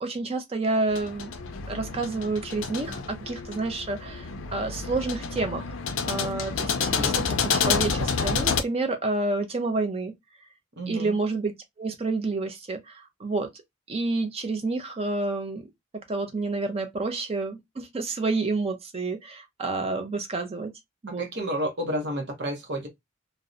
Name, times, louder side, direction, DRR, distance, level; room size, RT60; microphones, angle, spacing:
voice 1, 0.0-1.3 1.7-5.6 6.1-10.1 10.9-13.5 13.9-15.7 15.9-20.7 21.0-21.2, right 3 dB, 30° right, 0.4 m, -29 dB
sound 1, 0.9-8.6, left 5 dB, 70° left, 0.4 m, -29 dB
voice 2, 6.8-7.1 10.8-11.1 21.1-22.9, right 1 dB, 55° right, 0.7 m, -31 dB
2.6 x 2.0 x 2.3 m
head